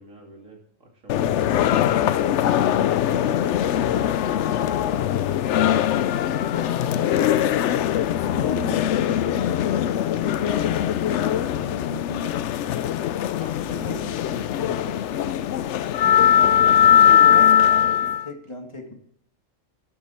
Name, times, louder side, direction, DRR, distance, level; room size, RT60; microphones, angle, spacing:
voice 1, 0.0-2.1 2.5-7.5 13.4-15.1, right 2 dB, 75° right, 1 dB, 3.1 m, -44 dB
sound 1, 1.1-18.2, left 10 dB, 65° left, 0.8 m, -21 dB
voice 2, 8.3-9.7 11.5-12.3 13.9-14.0 16.0-16.8 17.1-18.9, left 2 dB, 20° left, 2 dB, 2.1 m, -36 dB
12.5 x 9.0 x 4.4 m, 0.72 s
omnidirectional pair, 1.4 m